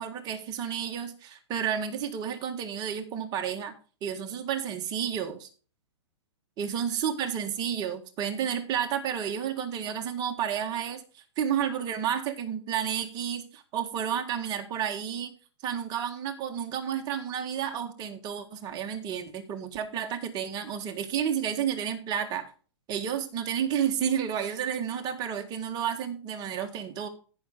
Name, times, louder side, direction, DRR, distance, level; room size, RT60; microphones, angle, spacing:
voice 1, 0.0-3.7 4.0-5.5 6.6-15.3 15.6-22.5 22.9-27.1, right 8 dB, 30° right, 6 dB, 1.7 m, -31 dB
15.0 x 6.3 x 3.8 m, 0.37 s
hypercardioid pair, 140°, 15 cm